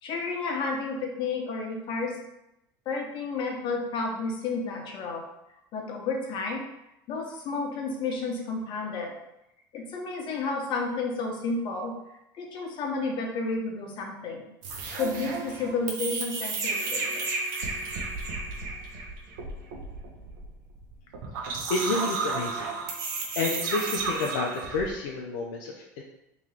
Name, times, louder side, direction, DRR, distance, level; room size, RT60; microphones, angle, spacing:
voice 1, 0.0-2.2 2.8-5.2 5.7-6.6 7.1-9.1 9.7-14.4 14.9-17.3, left 3 dB, 50° left, 0 dB, 1.1 m, -31 dB
sound 1, 14.6-24.9, right 4 dB, 70° right, 1.0 m, -33 dB
voice 2, 21.7-22.7 23.4-26.0, left 3 dB, 70° left, -2 dB, 0.6 m, -30 dB
3.6 x 3.0 x 4.4 m, 0.87 s
hypercardioid pair, 85°, 11 cm